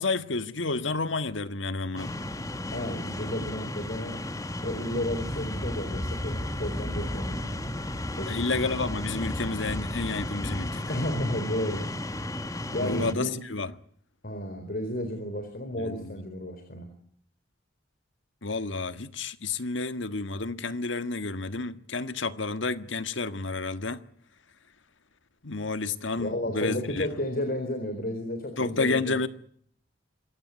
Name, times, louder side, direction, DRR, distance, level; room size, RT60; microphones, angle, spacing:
voice 1, 0.0-2.1 8.2-10.8 12.8-13.7 15.8-16.2 18.4-24.0 25.4-27.1 28.6-29.3, left 3 dB, 85° left, 1.6 m, -30 dB
sound 1, 2.0-13.1, left 1 dB, 20° left, 1.5 m, -33 dB
voice 2, 2.7-4.2 4.6-7.6 8.2-8.4 10.9-11.9 12.7-13.4 14.2-16.9 26.2-29.2, left 1 dB, 50° left, 4.2 m, -32 dB
26.5 x 16.0 x 9.4 m
head